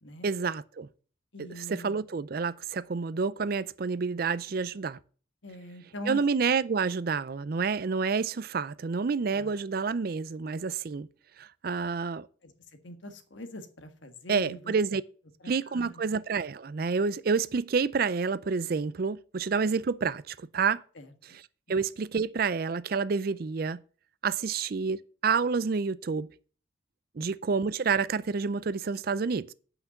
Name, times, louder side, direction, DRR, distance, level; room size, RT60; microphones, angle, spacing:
voice 1, 0.2-0.9 1.6-5.0 6.1-11.1 11.4-12.3 14.3-15.0 15.5-20.8 21.3-21.4 21.7-23.8 24.2-26.3 27.2-29.5, right 5 dB, 50° right, 0.4 m, -29 dB
voice 2, 1.3-2.0 5.4-6.2 9.3-9.5 12.4-12.5 12.8-14.7 15.4-16.1 20.9-21.1 27.2-27.3, equal, 70° left, 1.6 m, -43 dB
8.3 x 5.9 x 7.8 m
head